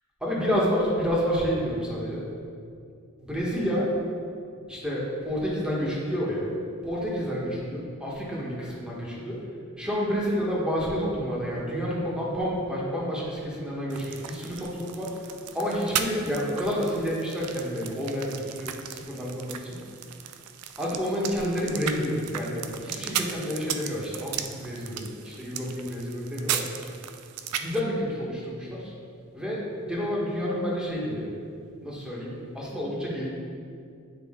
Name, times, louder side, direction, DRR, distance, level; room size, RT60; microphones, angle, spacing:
voice 1, 0.2-2.2 3.2-3.9 4.7-6.5 6.8-9.4 9.8-15.1 15.5-19.8 20.8-26.7 27.6-28.9 29.3-31.3 31.8-33.3, equal, 5° right, -6 dB, 1.6 m, -29 dB
sound 1, 13.9-27.8, right 9 dB, 85° right, 0.5 m, -36 dB
9.7 x 5.2 x 3.8 m, 2.3 s
head